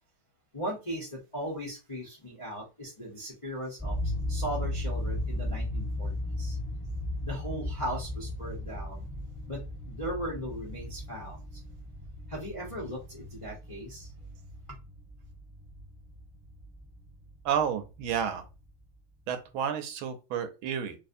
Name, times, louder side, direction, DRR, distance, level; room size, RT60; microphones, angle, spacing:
voice 1, 0.5-6.6 7.2-9.1 9.5-11.6 12.3-14.1, equal, 50° left, 0.3 m, -38 dB
sound 1, 3.8-18.7, left 1 dB, 5° left, 0.9 m, -36 dB
voice 2, 17.4-18.4 19.3-21.0, right 8 dB, 75° right, 1.4 m, -31 dB
3.3 x 3.1 x 2.6 m
omnidirectional pair, 2.4 m